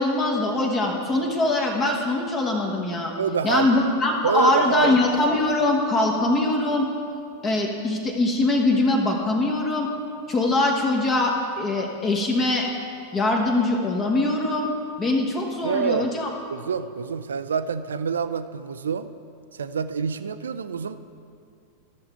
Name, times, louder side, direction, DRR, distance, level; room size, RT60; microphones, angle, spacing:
voice 1, 0.0-3.1 3.4-6.9 7.4-9.9 10.3-12.7 13.1-14.7 15.0-16.3, left 2 dB, 25° left, 1 dB, 1.1 m, -22 dB
voice 2, 3.1-3.7 4.2-4.9 15.6-16.1 16.5-19.1 19.5-21.0, right 6 dB, 70° right, 12 dB, 0.4 m, -26 dB
13.0 x 6.8 x 4.4 m, 2.4 s
figure-of-eight pair, 90°, 0 cm